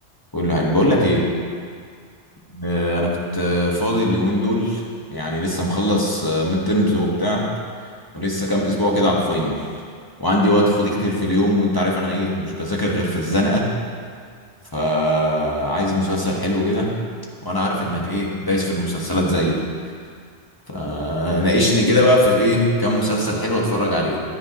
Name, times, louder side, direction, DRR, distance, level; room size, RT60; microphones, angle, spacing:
voice 1, 0.3-1.3 2.5-7.5 8.1-9.7 10.2-13.7 14.7-16.9 17.4-19.6 20.7-24.2, left 1 dB, 20° left, -4 dB, 1.6 m, -20 dB
15.0 x 11.0 x 3.1 m, 2.1 s
omnidirectional pair, 1.2 m